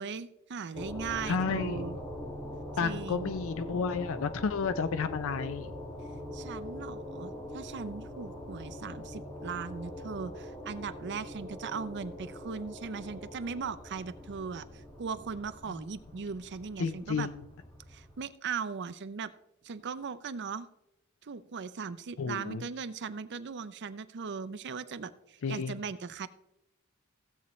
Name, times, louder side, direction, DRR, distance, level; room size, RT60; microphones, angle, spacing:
voice 1, 0.0-2.0 2.8-3.3 6.3-17.3 17.9-19.3 19.6-20.7 21.2-26.3, right 5 dB, 55° right, 13 dB, 0.5 m, -38 dB
sound 1, 0.7-18.2, left 1 dB, 15° left, 1.8 m, -43 dB
voice 2, 1.3-1.8 2.8-5.7 16.8-17.4 22.2-22.6 25.4-25.8, left 5 dB, 65° left, 12 dB, 0.5 m, -31 dB
16.0 x 8.2 x 3.1 m, 0.86 s
head